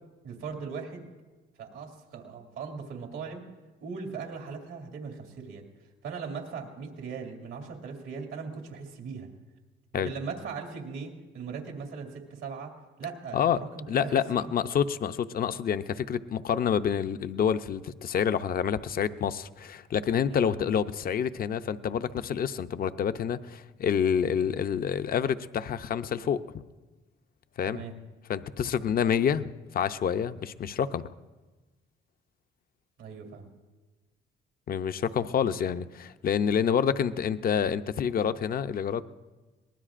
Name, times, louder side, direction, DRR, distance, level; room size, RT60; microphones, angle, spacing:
voice 1, 0.2-1.1 1.6-3.4 3.8-5.7 6.0-9.3 9.9-12.7 13.0-14.5 20.3-20.5 27.7-28.0 33.0-33.5 35.4-35.5, right 5 dB, 90° right, 2 dB, 2.3 m, -39 dB
voice 2, 13.3-26.4 27.6-27.8 28.3-31.1 34.7-39.0, left 8 dB, 50° left, 11 dB, 0.6 m, -28 dB
22.5 x 19.5 x 2.5 m, 1.2 s
cardioid pair, 90°, 20 cm